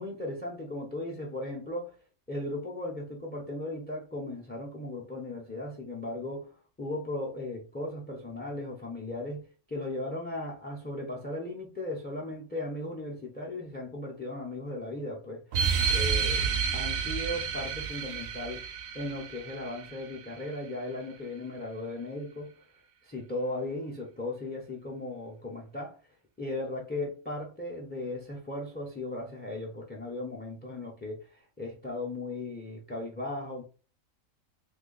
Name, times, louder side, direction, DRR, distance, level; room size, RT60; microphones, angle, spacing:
voice 1, 0.0-1.9 2.3-15.4 15.9-18.6 18.9-22.5 23.0-26.0 26.4-33.6, left 2 dB, 15° left, 0.4 m, -37 dB
sound 1, 15.5-20.5, right 6 dB, 60° right, 0.7 m, -30 dB
2.8 x 2.4 x 3.8 m
omnidirectional pair, 1.3 m